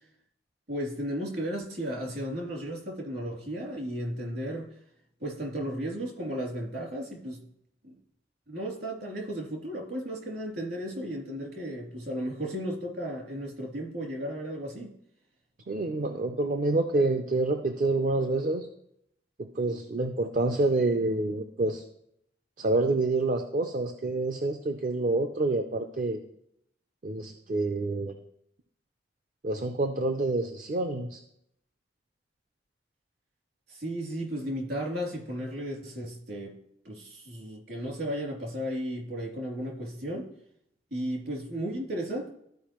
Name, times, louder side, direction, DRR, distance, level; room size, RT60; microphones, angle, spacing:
voice 1, 0.7-4.8 5.2-7.4 7.8-8.0 8.5-14.9 33.7-36.6 36.8-40.3 40.9-42.3, equal, 65° right, -2 dB, 2.7 m, -34 dB
voice 2, 15.7-18.7 19.4-21.8 22.6-26.2 27.0-28.1 29.4-31.2, right 2 dB, 45° right, 6 dB, 0.5 m, -27 dB
13.5 x 4.8 x 3.0 m, 0.74 s
head